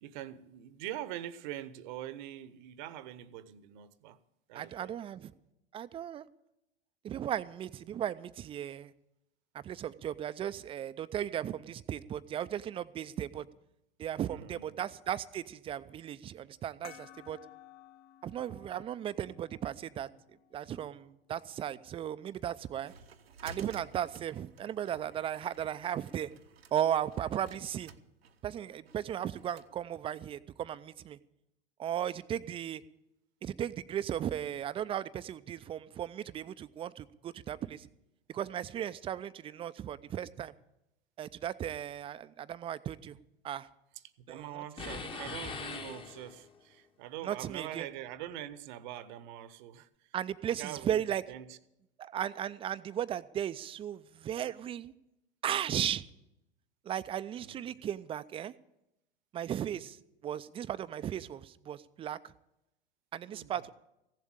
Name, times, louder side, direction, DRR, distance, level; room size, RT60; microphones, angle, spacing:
voice 1, 0.0-4.2 4.5-4.9 14.2-14.8 43.9-50.1 50.5-51.6 57.4-57.8 63.2-63.7, right 12 dB, 50° right, 0.9 m, -44 dB
voice 2, 4.5-5.3 5.7-6.3 7.0-8.9 9.5-13.4 14.0-17.4 18.2-20.1 20.5-22.9 23.4-26.3 26.7-27.9 28.4-31.2 31.8-32.8 33.4-37.9 38.3-40.5 41.2-43.2 43.4-43.7 44.3-44.9 47.2-47.9 50.1-51.2 52.0-54.9 55.4-56.0 56.9-58.5 59.3-60.0 60.2-62.2 63.1-63.7, right 10 dB, 20° right, 0.5 m, -36 dB
sound 1, 16.8-21.9, left 13 dB, 45° left, 1.0 m, -57 dB
sound 2, 22.3-29.7, right 5 dB, 75° right, 1.0 m, -54 dB
sound 3, 44.8-46.6, left 5 dB, 15° left, 1.0 m, -41 dB
15.5 x 7.6 x 8.8 m
figure-of-eight pair, 90°, 30 cm